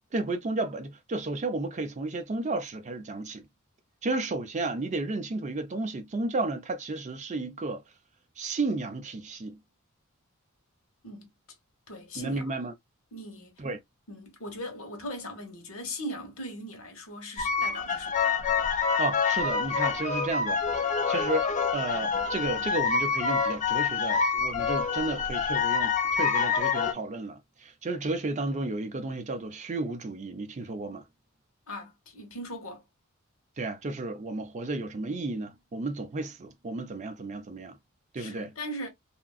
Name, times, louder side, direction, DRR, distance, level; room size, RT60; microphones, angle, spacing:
voice 1, 0.0-3.5 4.0-7.8 8.4-9.6 12.2-12.7 13.6-13.8 19.0-20.6 21.1-31.0 33.6-37.8 38.1-38.5, right 2 dB, 35° right, 0.5 m, -33 dB
voice 2, 11.9-12.4 13.1-13.6 14.1-18.4 31.7-32.8 38.2-38.9, equal, 70° left, 1.1 m, -39 dB
sound 1, 17.4-26.9, left 5 dB, 35° left, 0.5 m, -27 dB
2.9 x 2.5 x 2.3 m
head